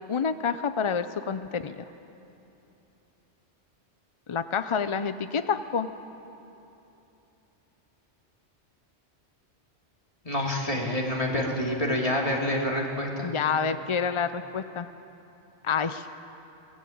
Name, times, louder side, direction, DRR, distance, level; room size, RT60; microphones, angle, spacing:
voice 1, 0.1-1.8 4.3-5.9 13.2-14.9 15.6-16.1, left 6 dB, 45° left, 11 dB, 0.4 m, -28 dB
voice 2, 10.2-13.3, left 1 dB, 30° left, -1 dB, 2.9 m, -27 dB
22.0 x 18.0 x 8.6 m, 3.0 s
omnidirectional pair, 1.2 m